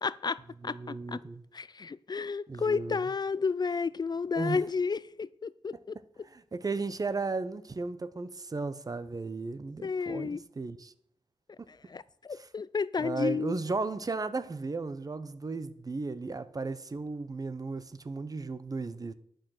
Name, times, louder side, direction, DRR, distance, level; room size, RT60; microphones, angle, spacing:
voice 1, 0.0-1.2 1.5-6.0 9.8-10.4 11.9-13.6, left 5 dB, 45° left, 0.4 m, -32 dB
voice 2, 0.6-1.4 2.5-3.1 4.3-4.7 6.2-10.9 12.3-12.5 13.0-19.1, right 3 dB, 40° right, 0.8 m, -35 dB
11.5 x 6.4 x 6.5 m
wide cardioid pair, 85°, 10 cm